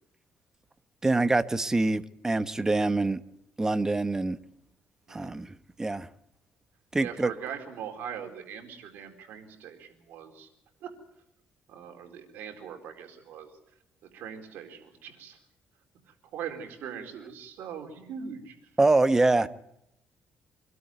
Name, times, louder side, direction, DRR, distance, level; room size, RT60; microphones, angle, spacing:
voice 1, 1.0-3.2 3.6-4.4 5.1-6.1 6.9-7.3 18.8-19.5, right 2 dB, 15° right, 12 dB, 1.0 m, -25 dB
voice 2, 7.0-10.5 10.8-10.9 11.7-13.5 14.1-15.4 16.1-18.5 19.1-19.5, right 8 dB, 80° right, 4 dB, 4.3 m, -41 dB
25.5 x 12.5 x 9.2 m, 0.83 s
cardioid pair, 115°, 3 cm